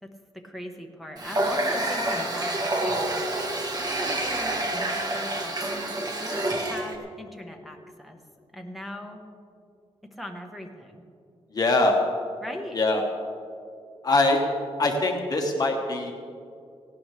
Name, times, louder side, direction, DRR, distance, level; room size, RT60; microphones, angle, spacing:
voice 1, 0.0-3.1 3.8-8.2 8.5-9.2 10.2-11.0 12.4-12.8, equal, ahead, 1 dB, 1.2 m, -39 dB
Water tap faucet, 1.2-7.0, right 1 dB, 40° right, 1.7 m, -28 dB
voice 2, 11.5-12.0 12.7-13.0 14.0-14.4 14.8-16.1, left 2 dB, 40° left, 1 dB, 1.4 m, -23 dB
18.5 x 17.5 x 3.4 m, 2.4 s
wide cardioid pair, 145°, 10 cm